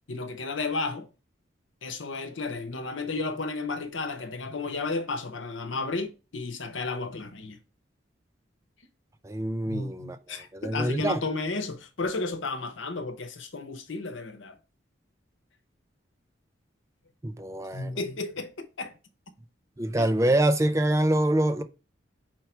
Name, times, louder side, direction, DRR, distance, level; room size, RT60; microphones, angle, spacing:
voice 1, 0.1-1.1 1.8-7.6 9.7-14.6 17.7-18.9 20.0-20.1, left 3 dB, 80° left, 0.9 m, -33 dB
voice 2, 9.2-10.2 10.5-11.2 17.2-17.9 19.8-21.6, right 1 dB, 15° right, 0.4 m, -25 dB
4.7 x 4.6 x 4.5 m
head